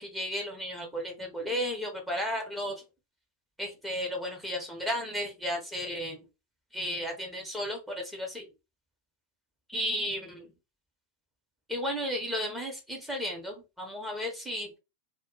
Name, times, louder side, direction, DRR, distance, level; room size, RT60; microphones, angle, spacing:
voice 1, 0.0-2.8 3.6-6.2 6.7-8.4 9.7-10.5 11.7-14.7, equal, 5° right, 0 dB, 0.9 m, -34 dB
2.2 x 2.1 x 3.7 m, 0.27 s
figure-of-eight pair, 90°, 0 cm